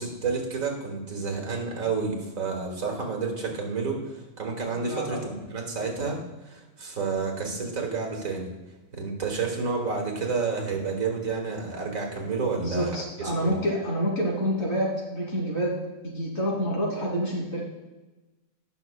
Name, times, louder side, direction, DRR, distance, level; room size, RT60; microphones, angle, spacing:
voice 1, 0.0-6.2 6.5-8.5 8.9-13.6, right 4 dB, 80° right, 1 dB, 2.1 m, -30 dB
voice 2, 4.7-5.2 12.6-15.8 16.0-17.6, equal, 55° left, -3 dB, 2.9 m, -28 dB
17.5 x 6.1 x 2.2 m, 1.1 s
omnidirectional pair, 1.4 m